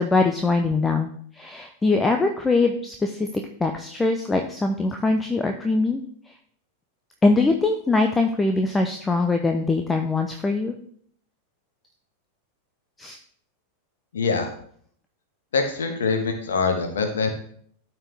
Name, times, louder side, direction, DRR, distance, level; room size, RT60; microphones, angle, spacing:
voice 1, 0.0-3.3 3.6-6.0 7.2-10.8 13.0-13.2, left 3 dB, 10° left, 5 dB, 0.6 m, -22 dB
voice 2, 14.1-14.5 15.5-17.3, left 4 dB, 65° left, 5 dB, 1.4 m, -24 dB
12.5 x 4.5 x 3.5 m, 0.62 s
figure-of-eight pair, 90°, 0 cm